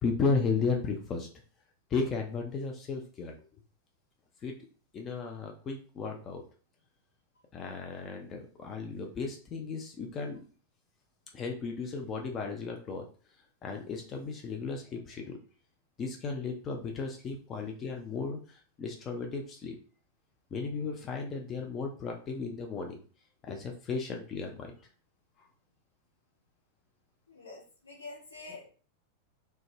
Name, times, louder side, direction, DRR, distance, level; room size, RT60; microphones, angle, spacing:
voice 1, 0.0-1.3 1.9-3.3 4.4-4.5 4.9-6.4 7.5-10.4 11.3-13.1 13.6-15.4 16.0-19.8 20.5-23.0 23.4-24.7, left 4 dB, 25° left, 2 dB, 0.4 m, -34 dB
voice 2, 27.3-28.7, left 3 dB, 75° left, -3 dB, 0.8 m, -46 dB
2.1 x 2.0 x 3.1 m, 0.39 s
figure-of-eight pair, 90°, 0 cm